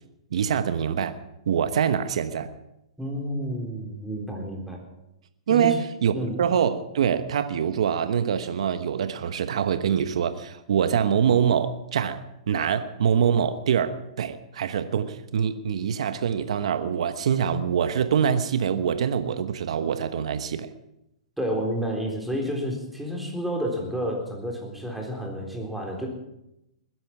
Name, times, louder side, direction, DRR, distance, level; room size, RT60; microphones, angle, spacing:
voice 1, 0.3-1.2 1.5-2.5 5.5-6.1 6.4-20.7, right 8 dB, 70° right, 10 dB, 1.1 m, -24 dB
voice 2, 3.0-4.8 5.5-5.8 6.1-6.4 21.4-26.1, equal, ahead, -1 dB, 3.7 m, -30 dB
20.5 x 10.5 x 6.0 m, 0.87 s
hypercardioid pair, 135°, 3 cm